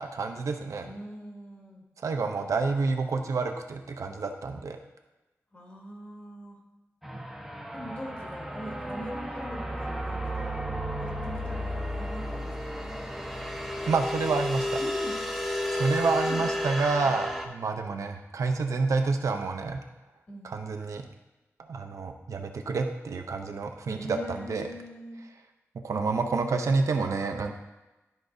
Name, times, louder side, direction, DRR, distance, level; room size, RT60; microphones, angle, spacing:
voice 1, 0.0-0.9 2.0-4.8 13.9-14.7 15.7-19.8 20.4-21.0 21.7-24.7 25.7-27.5, right 4 dB, 80° right, 4 dB, 0.7 m, -28 dB
voice 2, 0.8-1.8 5.5-6.6 7.7-10.6 11.0-13.0 14.8-15.3 16.2-16.5 20.3-20.6 23.9-25.2, equal, 35° left, -3 dB, 2.1 m, -42 dB
sound 1, 7.0-17.5, left 1 dB, ahead, 0.8 m, -33 dB
12.5 x 4.8 x 2.6 m, 1.1 s
wide cardioid pair, 100°, 5 cm